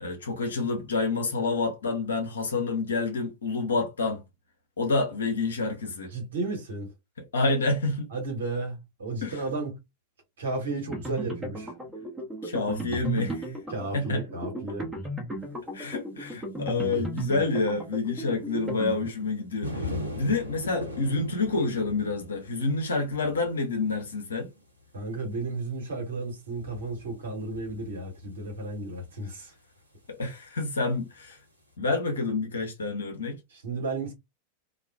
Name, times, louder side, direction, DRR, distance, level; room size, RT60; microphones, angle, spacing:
voice 1, 0.0-4.2 4.8-6.1 7.2-8.1 9.2-9.4 12.4-13.5 13.9-14.2 15.7-24.5 30.1-31.4 31.8-33.4, left 3 dB, 70° left, 0.7 m, -28 dB
voice 2, 6.1-6.9 8.1-9.7 10.4-11.7 13.7-14.9 24.9-29.5 33.5-34.1, right 3 dB, 65° right, 1.2 m, -33 dB
sound 1, 10.9-19.4, right 2 dB, 10° right, 1.0 m, -35 dB
sound 2, 19.6-29.8 31.2-31.4, left 1 dB, 85° right, 0.8 m, -40 dB
2.4 x 2.3 x 2.2 m
figure-of-eight pair, 90°, 0 cm